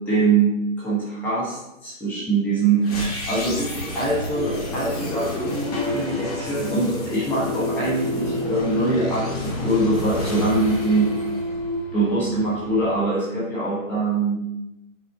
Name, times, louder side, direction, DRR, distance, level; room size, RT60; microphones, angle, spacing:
voice 1, 0.1-2.9 3.3-11.1 11.9-14.4, right 3 dB, 5° left, -7 dB, 0.9 m, -23 dB
sound 1, 2.8-12.0, left 1 dB, 30° left, 1.4 m, -30 dB
sound 2, 3.7-13.0, left 1 dB, 70° left, 1.7 m, -32 dB
5.6 x 4.2 x 4.4 m, 0.91 s
hypercardioid pair, 165°, 40 cm